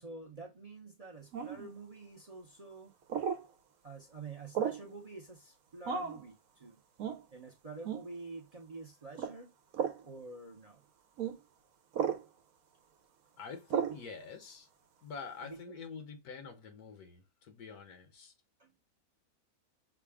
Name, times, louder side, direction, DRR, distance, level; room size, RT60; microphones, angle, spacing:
voice 1, 0.0-2.9 3.8-6.8 7.3-9.5 10.0-10.8 13.9-14.0 15.4-15.8 18.6-18.8, right 3 dB, 35° right, 0.6 m, -48 dB
sound 1, 1.3-1.7 3.1-3.4 4.5-4.9 5.8-6.2 7.0-7.2 7.8-8.1 9.1-9.3 9.7-10.0 11.2-11.3 11.9-12.2 13.7-14.0, right 7 dB, 75° right, 1.1 m, -34 dB
voice 2, 13.4-14.7 15.0-18.3, left 5 dB, 85° left, 1.6 m, -46 dB
5.9 x 2.3 x 3.5 m
omnidirectional pair, 1.6 m